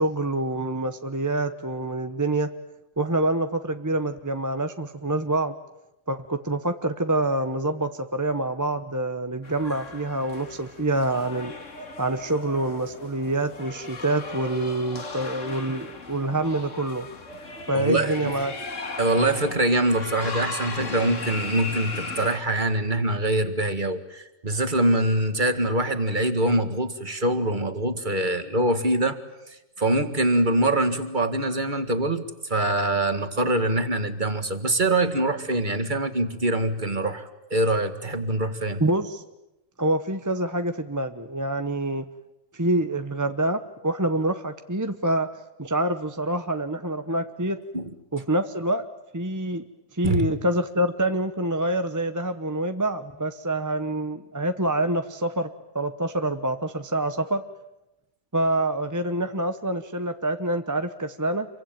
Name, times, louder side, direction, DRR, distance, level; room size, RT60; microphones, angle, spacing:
voice 1, 0.0-2.5 3.0-5.5 6.1-11.5 12.0-17.1 17.7-18.5 38.8-39.2 39.8-42.1 42.5-45.3 45.6-47.6 48.1-48.8 49.1-49.6 49.9-57.4 58.3-61.5, right 1 dB, 15° right, 8 dB, 0.8 m, -26 dB
sound 1, 9.4-22.4, left 3 dB, 60° left, 2.5 m, -37 dB
voice 2, 17.7-18.3 19.0-29.2 29.5-37.2 37.5-38.8 47.7-47.9 50.0-50.3, right 1 dB, 35° right, 9 dB, 2.0 m, -24 dB
28.0 x 23.5 x 9.1 m, 0.92 s
omnidirectional pair, 1.5 m